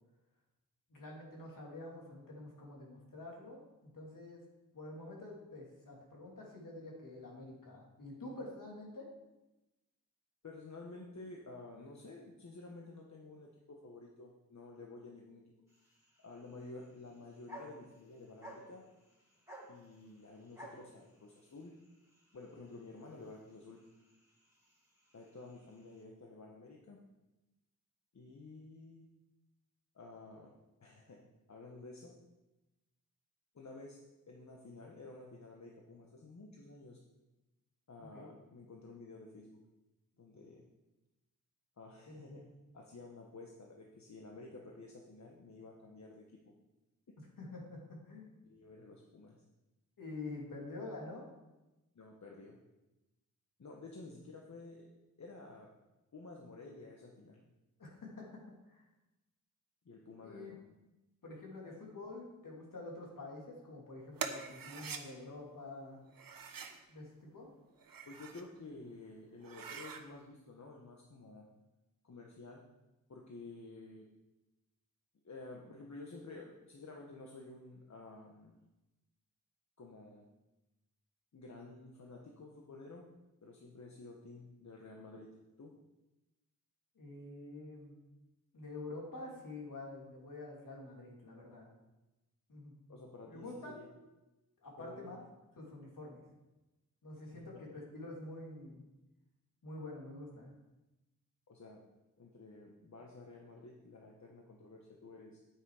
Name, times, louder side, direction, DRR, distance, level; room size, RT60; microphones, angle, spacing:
voice 1, 0.9-4.4 4.7-9.1 38.0-38.3 42.1-42.4 47.4-48.3 50.0-51.2 57.8-58.4 58.7-58.8 60.2-60.5 61.2-66.0 66.9-67.5 86.9-87.9 88.5-91.7 92.5-92.7 93.2-94.0 94.6-95.2 95.6-96.2 97.0-98.8 99.6-100.5, left 2 dB, 70° left, -2 dB, 3.1 m, -47 dB
voice 2, 10.4-15.5 15.8-15.9 16.2-18.8 19.7-21.7 22.3-23.8 25.1-27.0 28.1-29.1 29.9-30.5 30.8-31.2 31.5-32.1 33.5-34.0 34.3-37.0 37.9-39.6 40.2-40.7 41.8-42.4 42.7-46.5 47.1-47.2 48.4-49.4 51.9-52.6 53.6-54.9 55.2-55.7 56.1-57.4 59.8-60.6 68.1-71.5 72.0-72.6 73.1-74.1 75.2-78.6 79.8-80.2 81.3-83.1 83.4-85.3 85.6-85.7 92.9-93.9 94.8-95.2 97.1-97.8 101.5-101.8 102.2-105.4, left 3 dB, 55° left, 0 dB, 1.3 m, -52 dB
sound 1, 15.7-26.0, right 1 dB, 10° right, 3.3 m, -57 dB
sound 2, 64.2-65.0 66.1-66.8 67.7-68.5 68.9-69.0 69.4-70.0, right 6 dB, 80° right, 1.0 m, -44 dB
9.2 x 8.8 x 4.9 m, 1.0 s
wide cardioid pair, 105°, 34 cm